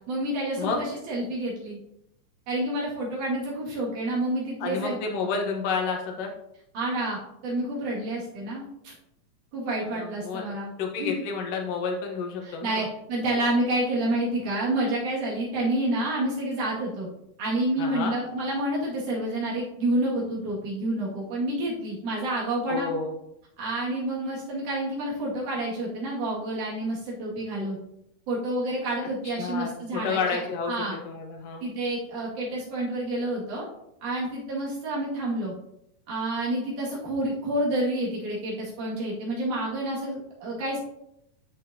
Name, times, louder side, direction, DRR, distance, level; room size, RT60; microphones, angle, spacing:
voice 1, 0.1-1.8 2.5-5.0 6.7-8.9 9.5-10.7 11.0-11.1 12.4-17.1 17.4-22.9 23.6-27.8 28.3-30.4 30.7-31.0 31.6-33.7 34.0-35.5 36.1-40.8, right 1 dB, 70° right, -5 dB, 3.6 m, -29 dB
voice 2, 4.6-6.3 9.8-12.9 17.8-18.2 22.7-23.1 29.2-31.7, left 5 dB, 60° left, 2 dB, 2.0 m, -30 dB
11.0 x 6.0 x 2.8 m, 0.81 s
omnidirectional pair, 3.7 m